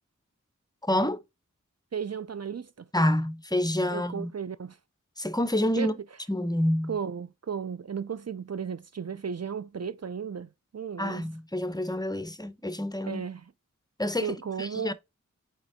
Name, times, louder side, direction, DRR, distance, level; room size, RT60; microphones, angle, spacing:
voice 1, 0.8-1.2 2.9-4.3 5.2-5.9 6.3-7.0 11.0-13.2 14.0-14.9, left 1 dB, 10° left, 0.9 m, -28 dB
voice 2, 1.9-2.9 3.9-4.8 5.8-6.0 6.9-11.3 13.0-13.5 14.2-14.9, right 7 dB, 55° right, 0.5 m, -35 dB
5.1 x 4.4 x 5.0 m
wide cardioid pair, 40°, 31 cm